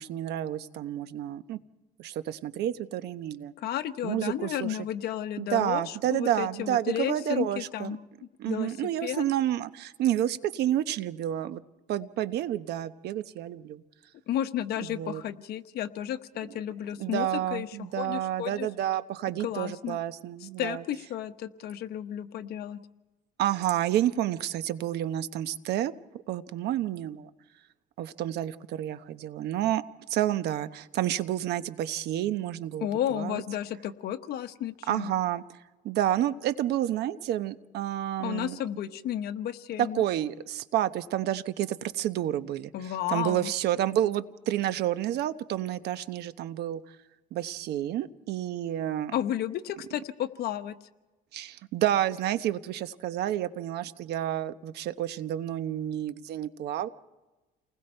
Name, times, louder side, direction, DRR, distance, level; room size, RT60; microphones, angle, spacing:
voice 1, 0.0-1.6 2.0-3.5 4.0-4.8 5.4-8.0 8.4-11.6 11.9-13.8 14.8-15.2 17.0-20.8 23.4-25.9 26.3-27.3 28.0-29.8 30.1-33.4 34.9-35.4 35.8-38.6 39.8-46.8 47.3-49.1 51.3-56.9, right 12 dB, 75° right, 12 dB, 1.0 m, -30 dB
voice 2, 3.6-8.0 8.5-8.7 9.0-9.2 14.3-17.7 18.0-18.7 19.4-20.0 20.4-22.8 32.8-35.1 38.2-40.0 42.7-43.5 49.1-50.7, left 11 dB, 70° left, 9 dB, 1.1 m, -32 dB
29.5 x 20.5 x 4.5 m, 1.1 s
cardioid pair, 110°, 17 cm